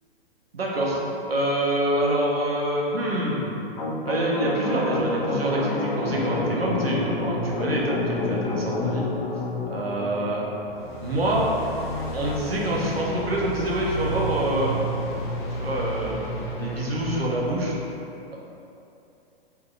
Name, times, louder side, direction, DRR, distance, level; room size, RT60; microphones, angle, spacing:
voice 1, 0.5-3.6 4.0-9.1 9.7-10.4 11.0-11.5 12.1-14.7 15.6-17.8, right 1 dB, 75° right, -4 dB, 0.9 m, -26 dB
sound 1, 3.8-17.5, left 1 dB, 50° left, 0.6 m, -30 dB
3.7 x 3.4 x 3.2 m, 2.8 s
figure-of-eight pair, 115°, 30 cm